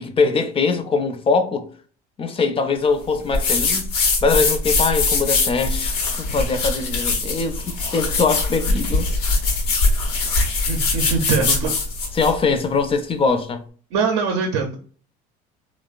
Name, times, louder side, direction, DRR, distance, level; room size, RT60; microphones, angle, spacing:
voice 1, 0.0-1.7 2.2-5.9 6.2-9.1 12.1-13.6, left 4 dB, 30° left, 0.5 m, -22 dB
sound 1, 3.3-12.4, left 3 dB, 85° left, 0.8 m, -22 dB
voice 2, 10.7-11.7 13.9-14.8, right 5 dB, 80° right, 0.5 m, -22 dB
3.0 x 2.0 x 2.3 m
supercardioid pair, 85°, 19 cm